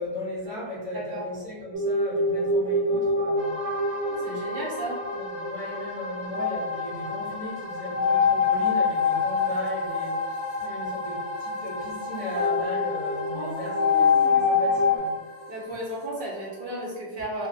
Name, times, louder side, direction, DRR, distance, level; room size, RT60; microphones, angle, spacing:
voice 1, 0.0-3.5 5.1-15.2, left 1 dB, 25° left, -8 dB, 0.7 m, -36 dB
sound 1, 1.7-15.0, left 4 dB, 90° right, 0.9 m, -26 dB
sound 2, 3.4-17.0, left 2 dB, 75° left, 0.9 m, -39 dB
voice 2, 4.1-5.0 13.3-14.5 15.5-17.5, right 1 dB, 60° right, -4 dB, 0.7 m, -34 dB
2.7 x 2.1 x 2.7 m, 1.2 s
omnidirectional pair, 1.2 m